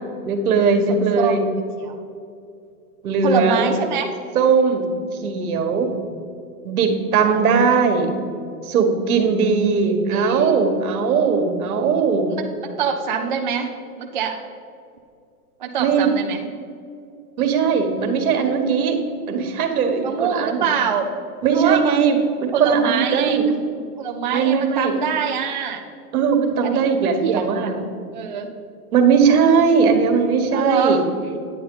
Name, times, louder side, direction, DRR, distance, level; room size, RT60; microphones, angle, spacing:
voice 1, 0.2-1.5 3.0-3.7 4.3-5.0 5.2-5.9 6.6-8.1 8.6-12.3 15.8-16.1 17.4-19.0 19.3-20.7 21.4-23.5 24.3-24.9 26.1-27.8 28.9-31.0, right 5 dB, 65° right, 4 dB, 1.6 m, -19 dB
voice 2, 0.9-1.4 1.8-2.0 3.2-4.1 9.8-10.6 12.3-14.4 15.6-16.4 20.0-21.1 21.5-21.9 22.5-23.5 24.0-25.8 26.6-26.9 27.2-27.7 28.1-28.5 30.5-31.0, right 6 dB, 35° right, 2 dB, 0.4 m, -24 dB
9.4 x 8.5 x 3.9 m, 2.4 s
hypercardioid pair, 160°, 47 cm